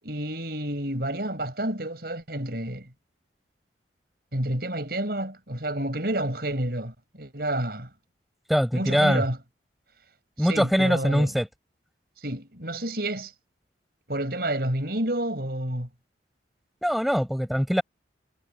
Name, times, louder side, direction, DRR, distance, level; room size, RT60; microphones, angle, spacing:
voice 1, 0.0-2.9 4.3-7.9 8.7-9.4 10.4-11.3 12.2-13.3 14.1-15.9, right 1 dB, 55° right, 6.2 m, -29 dB
voice 2, 8.5-9.2 10.4-11.5 16.8-17.8, equal, ahead, 7.4 m, -22 dB
head